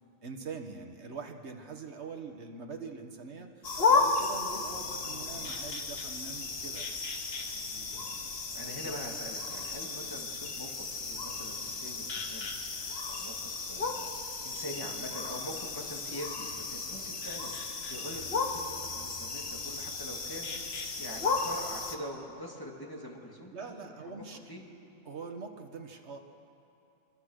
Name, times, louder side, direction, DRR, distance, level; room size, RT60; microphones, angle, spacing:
voice 1, 0.2-7.0 23.5-24.4 25.1-26.2, right 4 dB, 50° right, 5 dB, 1.7 m, -43 dB
sound 1, 3.6-22.0, left 4 dB, 45° left, 1.5 m, -34 dB
voice 2, 4.5-5.8 7.4-24.6, equal, 15° left, -1 dB, 2.6 m, -45 dB
26.0 x 24.5 x 6.6 m, 2.9 s
omnidirectional pair, 1.5 m